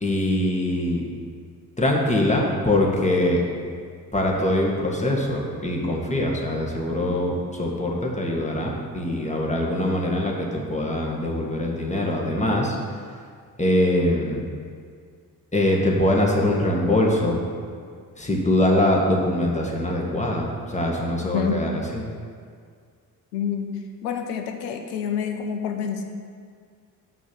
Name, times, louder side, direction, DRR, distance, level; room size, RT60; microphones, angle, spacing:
voice 1, 0.0-1.0 1.8-3.4 4.1-12.8 13.6-14.4 15.5-17.4 18.2-22.0, left 1 dB, 15° left, -2 dB, 1.8 m, -23 dB
voice 2, 21.2-21.6 23.3-23.7 24.0-26.0, left 7 dB, 80° left, 5 dB, 0.8 m, -27 dB
6.0 x 5.7 x 6.9 m, 2.1 s
hypercardioid pair, 40°, 46 cm